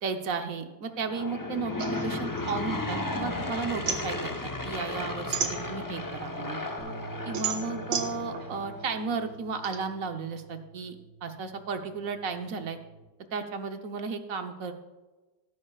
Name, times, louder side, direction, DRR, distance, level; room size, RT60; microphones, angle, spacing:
voice 1, 0.0-6.6 7.2-11.0 11.2-12.8 13.3-14.7, right 4 dB, 55° right, 6 dB, 1.3 m, -34 dB
Aircraft / Engine, 0.9-8.9, left 2 dB, 20° left, 0.5 m, -34 dB
sound 1, 1.8-3.3 3.6-6.1 6.6-9.8, right 7 dB, 80° right, 1.8 m, -34 dB
sound 2, 6.8-13.0, right 3 dB, 50° left, 3.9 m, -48 dB
15.5 x 13.5 x 2.4 m, 1.2 s
omnidirectional pair, 2.0 m